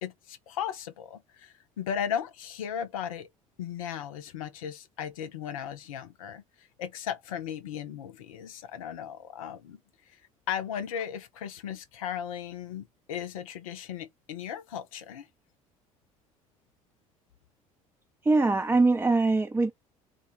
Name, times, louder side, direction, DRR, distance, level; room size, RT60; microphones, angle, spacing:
voice 1, 0.0-3.3 3.6-9.8 10.5-15.3, left 9 dB, 75° left, 0.6 m, -36 dB
voice 2, 18.2-19.7, right 3 dB, 10° right, 0.5 m, -22 dB
4.0 x 2.2 x 4.3 m
figure-of-eight pair, 60°, 18 cm